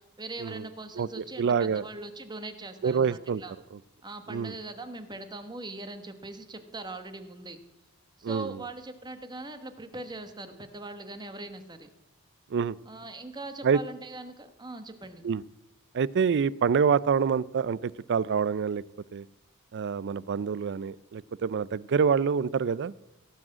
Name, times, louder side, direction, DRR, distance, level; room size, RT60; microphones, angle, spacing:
voice 1, 0.2-3.5 4.0-7.6 8.2-11.9 12.9-15.2, right 2 dB, 20° right, 8 dB, 1.1 m, -41 dB
voice 2, 1.4-1.9 2.8-3.4 4.3-4.5 8.2-8.6 12.5-12.8 13.6-13.8 15.2-15.4 15.9-18.8 19.1-19.2 19.7-22.9, right 6 dB, 50° right, 21 dB, 0.4 m, -26 dB
17.0 x 6.2 x 7.5 m, 0.90 s
head